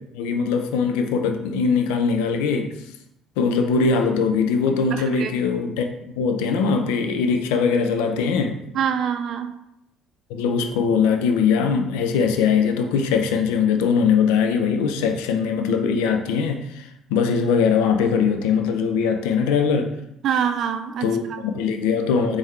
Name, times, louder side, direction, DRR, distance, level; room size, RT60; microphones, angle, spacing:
voice 1, 0.1-2.7 3.4-5.9 6.2-8.6 10.3-19.9 21.0-22.4, left 5 dB, 75° left, 5 dB, 0.4 m, -21 dB
voice 2, 4.9-5.4 8.7-9.5 20.2-21.4, right 8 dB, 55° right, 8 dB, 0.4 m, -25 dB
3.6 x 3.2 x 3.1 m, 0.80 s
hypercardioid pair, 55°, 0 cm